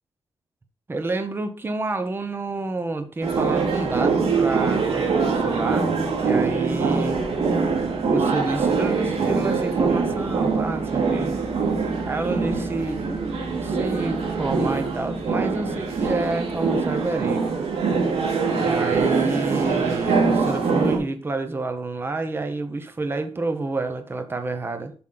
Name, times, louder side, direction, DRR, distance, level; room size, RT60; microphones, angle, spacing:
voice 1, 0.9-7.2 8.1-11.4 12.1-17.6 18.5-24.9, right 2 dB, 20° right, 7 dB, 1.0 m, -29 dB
sound 1, 3.2-21.0, right 4 dB, 90° right, 2.5 m, -23 dB
7.5 x 6.2 x 4.0 m, 0.40 s
wide cardioid pair, 155°, 10 cm